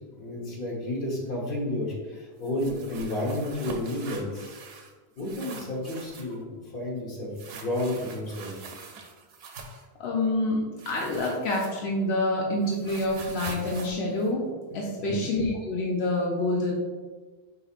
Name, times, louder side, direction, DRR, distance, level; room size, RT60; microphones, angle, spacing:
voice 1, 0.2-4.6 5.2-8.6 15.0-15.2, left 1 dB, 60° left, -4 dB, 1.3 m, -31 dB
sound 1, 2.4-4.9 5.2-6.4 7.4-9.9 10.8-12.1 12.4-15.0, right 4 dB, 75° right, 0.8 m, -43 dB
voice 2, 10.0-14.4 14.7-16.7, left 2 dB, 85° left, -2 dB, 0.9 m, -27 dB
6.1 x 3.1 x 2.4 m, 1.4 s
omnidirectional pair, 1.0 m